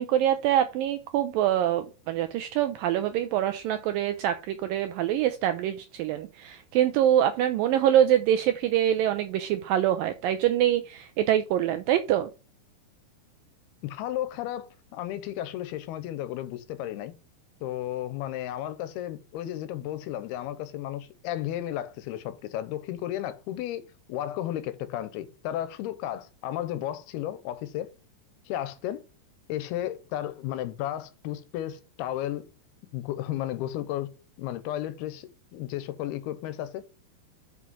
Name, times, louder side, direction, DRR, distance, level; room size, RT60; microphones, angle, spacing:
voice 1, 0.0-12.3, right 11 dB, 85° right, 2.0 m, -25 dB
voice 2, 13.8-17.1 17.6-27.9 28.5-29.0 29.5-32.5 32.9-34.1 34.4-36.8, left 12 dB, 80° left, 2.7 m, -33 dB
6.2 x 5.8 x 5.4 m
omnidirectional pair, 4.6 m